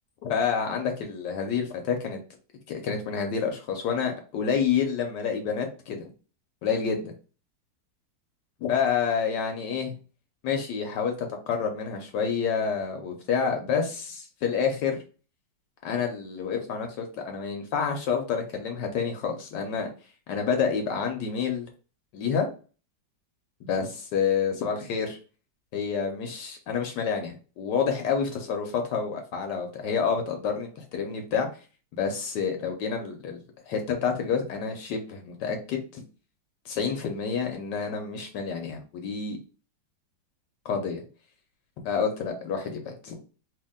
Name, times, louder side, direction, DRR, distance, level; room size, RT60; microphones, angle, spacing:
voice 1, 0.2-2.2 2.7-6.1 6.6-7.1 8.6-9.9 10.4-15.0 15.8-19.9 20.3-21.7 22.1-22.5 23.6-25.2 25.7-31.5 31.9-36.0 36.7-39.4 40.6-41.0 41.8-43.2, left 6 dB, 75° left, 4 dB, 1.2 m, -28 dB
3.1 x 2.7 x 3.5 m, 0.36 s
omnidirectional pair, 2.0 m